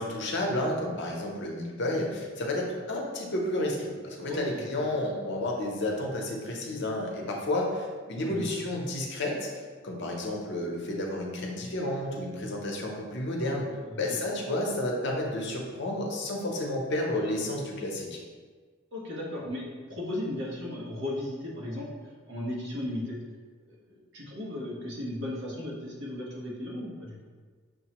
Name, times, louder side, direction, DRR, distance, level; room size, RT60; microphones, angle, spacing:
voice 1, 0.0-9.5 9.8-13.6 14.0-18.2, left 1 dB, 60° left, -1 dB, 0.7 m, -31 dB
voice 2, 4.3-4.6 8.2-8.5 13.8-14.2 18.9-23.2 23.7-27.2, left 1 dB, 70° right, -4 dB, 1.0 m, -36 dB
6.3 x 2.1 x 2.9 m, 1.5 s
head